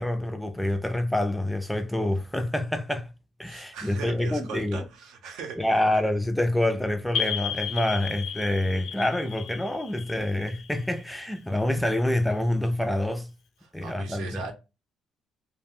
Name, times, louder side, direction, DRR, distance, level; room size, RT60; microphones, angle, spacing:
voice 1, 0.0-3.1 3.4-4.8 5.6-13.3 13.7-14.4, left 1 dB, 5° left, 0.3 m, -27 dB
voice 2, 3.4-5.7 13.6-14.5, right 5 dB, 90° right, 0.7 m, -39 dB
sound 1, 7.1-11.6, left 8 dB, 65° left, 0.4 m, -34 dB
2.3 x 2.1 x 3.5 m
cardioid pair, 140°, 0 cm